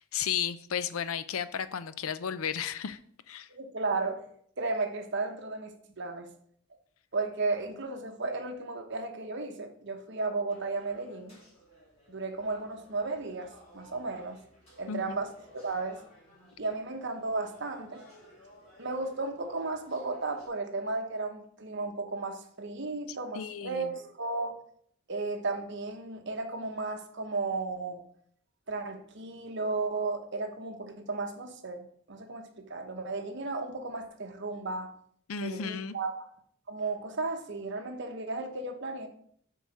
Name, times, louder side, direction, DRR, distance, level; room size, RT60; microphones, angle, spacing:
voice 1, 0.0-3.0 3.3-3.5 14.9-15.2 23.3-23.9 35.3-35.9, left 8 dB, 80° left, 14 dB, 0.5 m, -34 dB
voice 2, 3.5-4.2 4.6-5.7 6.0-6.3 7.1-11.4 12.1-14.4 14.8-16.0 16.3-18.0 18.8-24.6 25.1-28.0 28.7-34.9 35.4-36.3 36.7-39.1, right 3 dB, 55° right, 5 dB, 1.1 m, -34 dB
sound 1, 10.5-20.5, equal, 30° left, 3.4 m, -57 dB
6.4 x 4.8 x 6.6 m, 0.64 s
head